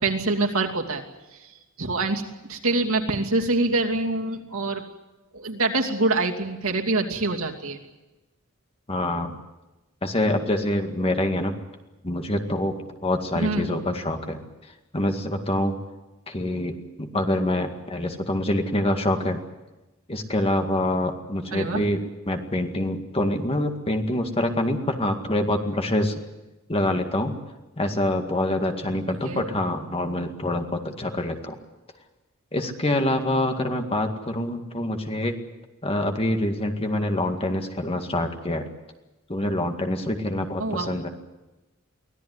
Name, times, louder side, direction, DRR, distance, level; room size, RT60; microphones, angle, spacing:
voice 1, 0.0-1.0 1.4-1.5 1.8-2.2 2.5-4.8 5.3-7.8 13.3-13.8 21.5-21.8 29.2-29.4 40.6-41.0, right 2 dB, 80° right, 1 dB, 2.7 m, -25 dB
voice 2, 8.9-9.4 10.0-11.5 12.0-14.4 14.9-15.7 16.3-19.4 20.1-26.1 26.7-27.4 27.8-31.6 32.5-35.3 35.8-38.7 39.3-41.1, left 1 dB, 25° left, 5 dB, 2.0 m, -26 dB
24.0 x 17.0 x 9.7 m, 1.1 s
head